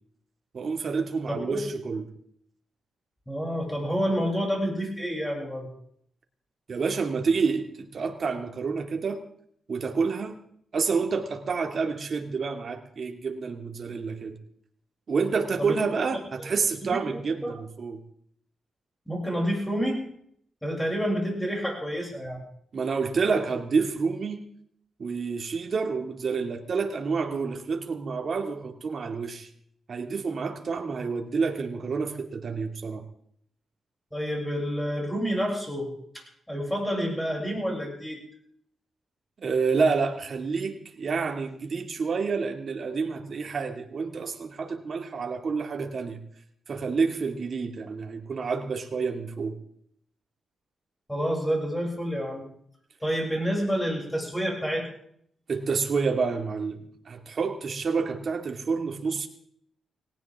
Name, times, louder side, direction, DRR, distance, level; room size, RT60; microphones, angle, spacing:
voice 1, 0.5-2.0 6.7-9.2 9.7-10.4 10.7-14.4 15.1-18.0 22.7-24.4 25.0-29.5 29.9-33.0 39.4-46.2 46.7-49.6 55.5-59.3, right 5 dB, 50° right, 4 dB, 2.4 m, -28 dB
voice 2, 1.3-1.6 3.3-5.7 15.6-15.8 16.8-17.0 17.4-17.5 19.1-20.0 20.6-22.4 34.1-35.9 36.1-38.2 51.1-52.4 53.0-54.9, equal, 5° left, -1 dB, 7.0 m, -28 dB
19.5 x 18.0 x 3.7 m, 0.66 s
cardioid pair, 90°, 0 cm